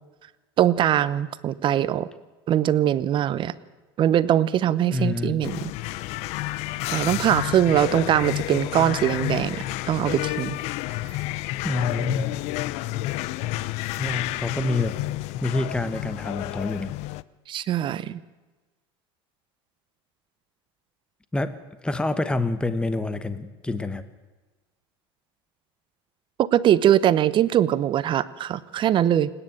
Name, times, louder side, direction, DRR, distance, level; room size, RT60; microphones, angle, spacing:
voice 1, 0.6-2.1 2.5-3.5 4.0-5.6 6.9-9.6 9.9-10.6 11.1-11.2 17.5-18.2 26.4-29.3, right 11 dB, 40° right, 16 dB, 0.9 m, -22 dB
voice 2, 4.9-5.4 11.6-12.4 14.0-15.0 15.4-16.9 21.3-21.6 21.8-24.0, left 2 dB, 5° left, 12 dB, 1.0 m, -27 dB
sound 1, 5.4-17.2, left 17 dB, 60° left, 0.6 m, -30 dB
28.5 x 10.0 x 9.1 m, 1.2 s
supercardioid pair, 110°, 13 cm